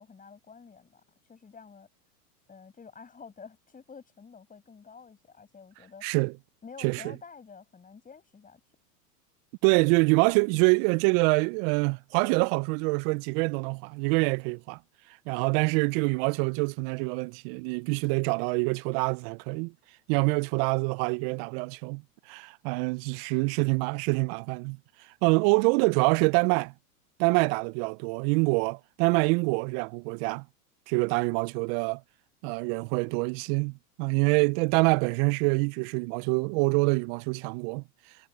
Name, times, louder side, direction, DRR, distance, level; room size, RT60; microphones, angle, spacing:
voice 1, 0.0-1.9 2.5-6.0 6.6-8.6 25.4-25.6, left 5 dB, 15° left, 8.0 m, -49 dB
voice 2, 6.0-6.3 6.8-7.0 9.6-14.8 15.3-19.7 20.1-22.0 22.3-24.8 25.2-26.7 27.2-30.5 30.9-32.0 32.4-37.8, right 30 dB, 40° right, 0.5 m, -25 dB
hypercardioid pair, 110°, 47 cm